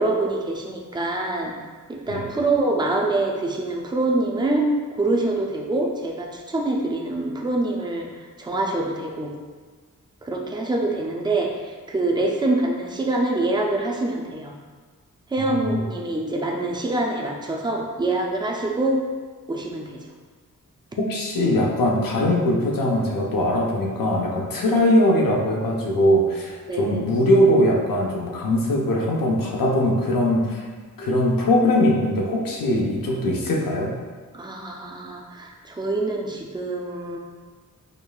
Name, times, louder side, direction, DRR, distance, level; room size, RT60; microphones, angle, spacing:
voice 1, 0.0-1.5 1.9-4.7 5.0-8.1 8.4-9.3 10.2-14.5 15.3-19.0 19.5-20.0 24.8-24.9 26.7-27.0 34.3-37.2, right 2 dB, 15° right, 0 dB, 0.3 m, -25 dB
voice 2, 15.4-15.8 21.0-30.6 31.0-33.9, left 1 dB, 90° left, -2 dB, 0.7 m, -21 dB
5.1 x 2.3 x 2.3 m, 1.5 s
wide cardioid pair, 155°, 33 cm